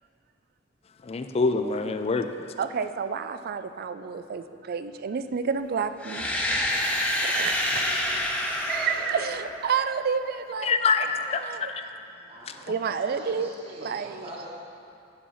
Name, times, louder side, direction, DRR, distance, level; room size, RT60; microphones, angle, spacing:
voice 1, 1.0-2.3 10.6-11.4 11.7-11.9, left 4 dB, 35° left, 8 dB, 0.4 m, -25 dB
voice 2, 2.6-6.3 7.2-7.7 8.7-10.9 11.4-11.7 12.7-13.5 13.8-14.3, right 6 dB, 50° right, 11 dB, 0.3 m, -30 dB
sound 1, 6.0-9.9, left 1 dB, 10° left, 0.8 m, -27 dB
voice 3, 12.3-14.5, right 1 dB, 30° right, -4 dB, 1.1 m, -44 dB
8.7 x 5.6 x 5.6 m, 2.6 s
head